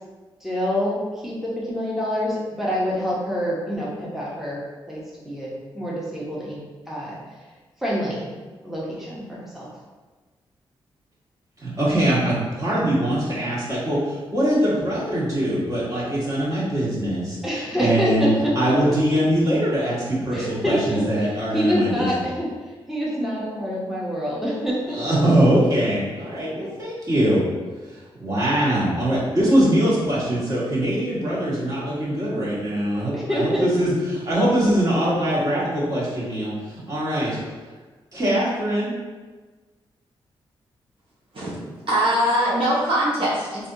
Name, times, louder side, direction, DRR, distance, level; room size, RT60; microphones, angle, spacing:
voice 1, 0.4-4.6 4.9-7.5 7.8-8.3 8.6-9.7 17.4-18.5 18.9-19.0 20.3-25.0 33.1-33.9, equal, 5° right, -6 dB, 0.8 m, -26 dB
voice 2, 11.6-17.4 17.8-18.3 18.5-22.0 24.9-27.4 27.9-37.3 38.1-38.9, right 1 dB, 35° right, -8 dB, 1.5 m, -22 dB
voice 3, 41.9-43.7, equal, 60° right, -7 dB, 0.9 m, -21 dB
3.3 x 2.6 x 2.7 m, 1.3 s
cardioid pair, 60°, 10 cm